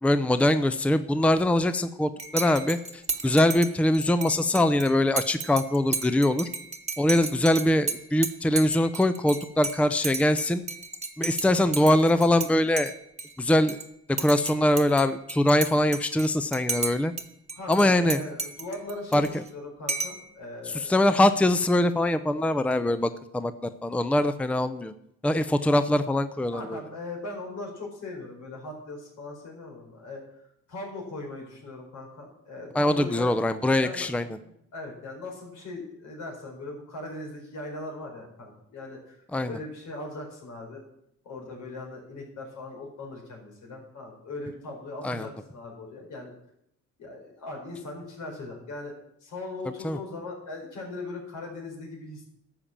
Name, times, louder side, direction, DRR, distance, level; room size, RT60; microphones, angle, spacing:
voice 1, 0.0-2.8 3.2-6.5 7.0-10.6 11.2-12.9 13.4-13.8 14.2-17.1 17.7-18.2 19.1-19.4 20.7-24.9 25.2-26.8 32.7-34.3 39.3-39.6 45.0-45.3 49.8-50.0, left 1 dB, 5° left, 12 dB, 0.6 m, -23 dB
Dishes pots and pans / Cutlery silverware / Chink clink, 2.2-12.5 12.8-13.9 14.2-17.2 17.5-19.5 19.9-20.3, right 4 dB, 20° right, 1.4 m, -34 dB
voice 2, 17.5-21.0 26.5-30.2 30.7-33.4 33.8-34.3 34.7-40.8 41.2-46.3 47.0-48.9 49.2-52.2, left 2 dB, 80° left, -1 dB, 5.0 m, -39 dB
12.0 x 7.0 x 7.4 m, 0.75 s
cardioid pair, 90°, 30 cm